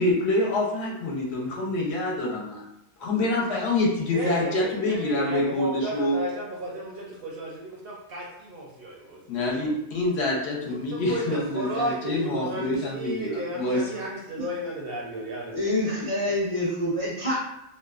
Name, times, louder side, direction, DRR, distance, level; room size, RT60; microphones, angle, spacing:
voice 1, 0.0-2.6 3.0-6.2 9.3-13.8, left 2 dB, 65° left, -2 dB, 0.8 m, -26 dB
voice 2, 4.1-9.7 10.7-15.6, right 1 dB, 60° right, -3 dB, 0.6 m, -33 dB
voice 3, 15.5-17.3, left 1 dB, 45° left, -8 dB, 0.4 m, -26 dB
2.5 x 2.1 x 2.3 m, 0.82 s
omnidirectional pair, 1.2 m